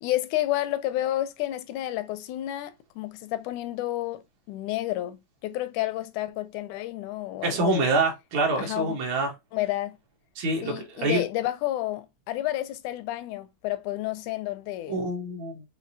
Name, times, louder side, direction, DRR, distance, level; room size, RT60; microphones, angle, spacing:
voice 1, 0.0-7.9 8.6-9.0 9.5-10.0 10.6-15.0, left 15 dB, 85° left, 2.0 m, -30 dB
voice 2, 7.4-9.3 10.4-11.2 14.9-15.6, right 2 dB, 70° right, 2.4 m, -26 dB
6.3 x 2.7 x 2.6 m
omnidirectional pair, 3.4 m